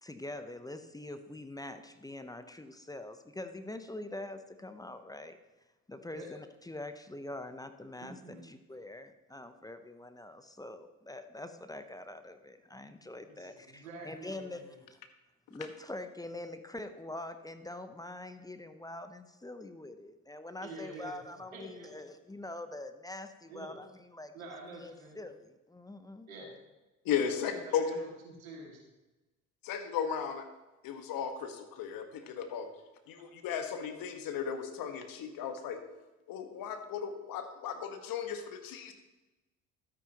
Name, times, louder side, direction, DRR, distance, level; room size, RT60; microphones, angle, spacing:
voice 1, 0.0-5.4 5.9-14.6 14.9-15.0 15.5-26.3, left 1 dB, 10° left, 9 dB, 0.8 m, -44 dB
voice 2, 8.0-8.4 13.2-14.8 20.6-21.1 21.5-21.9 23.5-23.7 24.3-25.2 26.3-26.5 27.3-28.8, right 1 dB, 85° right, -1 dB, 2.2 m, -47 dB
voice 3, 27.0-27.9 29.6-30.5 30.8-32.7 33.1-35.8 36.3-38.9, left 8 dB, 55° left, 7 dB, 1.4 m, -35 dB
12.5 x 9.1 x 2.9 m, 1.1 s
hypercardioid pair, 60°, 40 cm